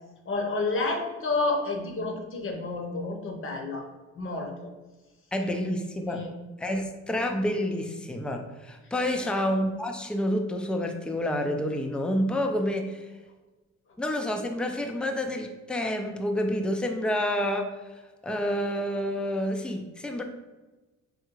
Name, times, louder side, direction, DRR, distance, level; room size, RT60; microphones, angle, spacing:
voice 1, 0.3-3.9 4.2-4.7 6.1-6.3 9.1-9.3, left 3 dB, 45° left, 3 dB, 0.7 m, -30 dB
voice 2, 5.3-6.3 6.6-13.1 14.0-17.7 18.2-20.2, left 1 dB, 5° left, 4 dB, 0.3 m, -28 dB
3.6 x 2.2 x 3.0 m, 1.1 s
cardioid pair, 90°, 30 cm